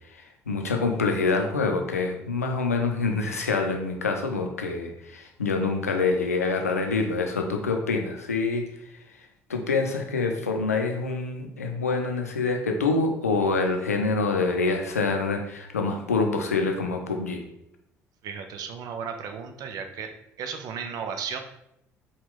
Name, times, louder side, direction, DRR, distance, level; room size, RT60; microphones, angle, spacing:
voice 1, 0.1-8.7 9.5-17.4, left 3 dB, 90° left, 3 dB, 0.5 m, -26 dB
voice 2, 18.2-20.1 20.4-21.4, right 6 dB, 55° right, 6 dB, 0.5 m, -34 dB
4.7 x 2.3 x 3.6 m, 0.78 s
figure-of-eight pair, 55°, 8 cm